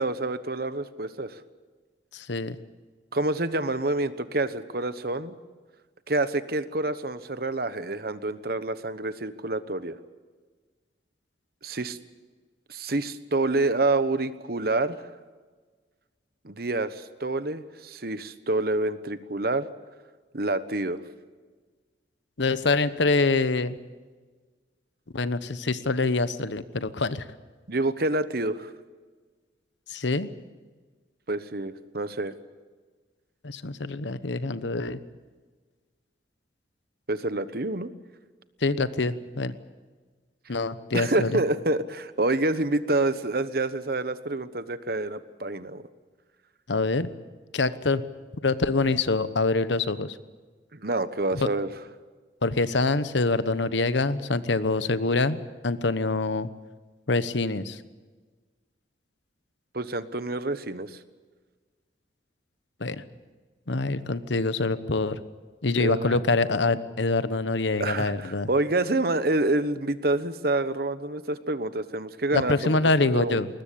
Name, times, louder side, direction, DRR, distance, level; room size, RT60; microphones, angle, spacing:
voice 1, 0.0-1.4 3.1-5.4 6.1-10.0 11.6-12.0 12.7-15.0 16.4-19.7 20.3-21.0 27.7-28.7 31.3-32.3 37.1-37.9 40.9-45.8 50.7-51.7 59.7-61.0 65.8-66.3 67.8-72.8 73.1-73.4, right 2 dB, 55° right, 13 dB, 1.1 m, -27 dB
voice 2, 2.1-2.6 22.4-23.8 25.1-27.2 29.9-30.3 33.4-35.0 38.6-39.5 40.5-41.3 46.7-47.1 47.5-48.0 48.4-50.2 51.3-51.5 52.4-56.5 57.1-57.8 62.8-63.0 63.7-65.2 65.6-68.5 72.3-73.5, left 3 dB, 80° left, 13 dB, 1.0 m, -25 dB
21.5 x 19.5 x 8.6 m, 1.4 s
head